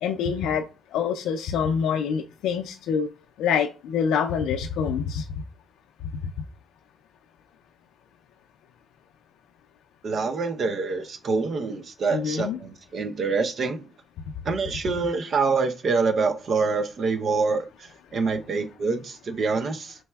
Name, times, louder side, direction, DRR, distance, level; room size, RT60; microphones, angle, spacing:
voice 1, 0.0-0.7 0.9-3.1 3.4-5.3 12.1-12.6, left 7 dB, 85° left, 0.3 m, -26 dB
voice 2, 10.0-13.8 14.5-17.6 18.1-19.9, right 4 dB, 55° right, 0.7 m, -26 dB
4.6 x 4.0 x 2.2 m
cardioid pair, 90°, 0 cm